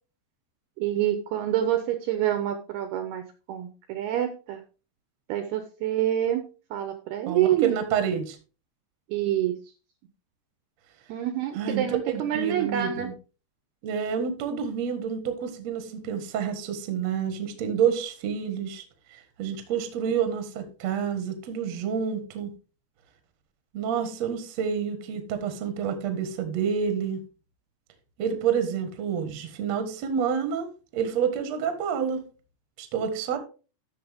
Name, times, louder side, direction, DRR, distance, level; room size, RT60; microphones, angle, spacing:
voice 1, 0.8-4.6 5.3-6.4 6.7-7.8 9.1-9.6 11.1-13.1, right 12 dB, 75° right, 7 dB, 2.5 m, -27 dB
voice 2, 7.3-8.4 11.6-13.1 13.8-18.8 19.1-22.5 23.7-27.2 28.2-32.2 32.8-33.4, right 7 dB, 60° right, 8 dB, 1.8 m, -28 dB
12.5 x 6.5 x 3.5 m, 0.35 s
omnidirectional pair, 5.3 m